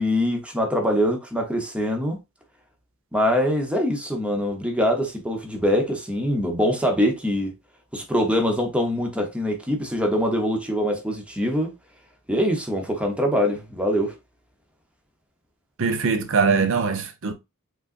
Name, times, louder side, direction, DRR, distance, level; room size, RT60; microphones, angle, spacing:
voice 1, 0.0-2.2 3.1-7.5 7.9-11.7 12.3-14.1, equal, 5° right, 0.9 m, -23 dB
voice 2, 15.8-17.3, right 5 dB, 60° right, 0.7 m, -22 dB
5.2 x 3.9 x 2.5 m
head